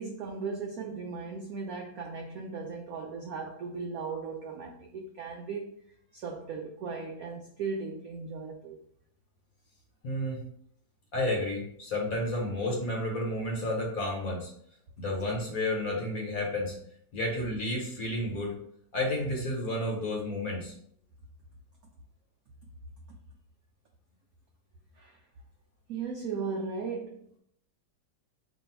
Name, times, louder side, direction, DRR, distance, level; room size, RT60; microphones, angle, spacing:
voice 1, 0.0-5.8 6.1-8.8 23.1-23.2 25.0-25.2 25.9-27.4, right 4 dB, 80° right, 1 dB, 0.8 m, -37 dB
voice 2, 10.0-10.4 11.1-14.5 15.0-16.8 17.1-18.6 18.9-20.7, left 1 dB, 55° left, -2 dB, 1.3 m, -31 dB
3.0 x 2.6 x 4.3 m, 0.66 s
omnidirectional pair, 2.1 m